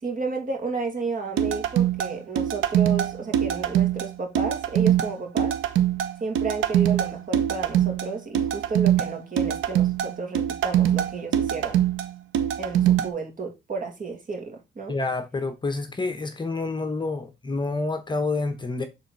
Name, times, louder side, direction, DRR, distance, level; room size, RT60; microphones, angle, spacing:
voice 1, 0.0-5.6 6.2-11.8 12.6-14.9, right 4 dB, 45° right, 2.5 m, -32 dB
sound 1, 1.4-13.1, right 10 dB, 85° right, 0.9 m, -23 dB
voice 2, 14.9-18.9, left 3 dB, 25° left, 1.0 m, -28 dB
7.0 x 3.9 x 4.1 m
cardioid pair, 90°, 20 cm